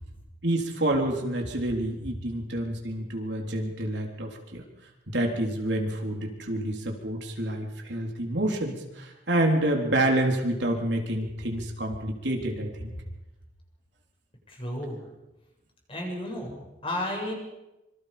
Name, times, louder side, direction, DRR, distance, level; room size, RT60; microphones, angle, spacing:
voice 1, 0.4-4.6 5.1-12.9, right 1 dB, 75° right, 1 dB, 3.8 m, -28 dB
voice 2, 14.5-15.0 15.9-17.3, left 1 dB, 30° left, 0 dB, 7.3 m, -33 dB
26.0 x 25.0 x 5.2 m, 0.98 s
head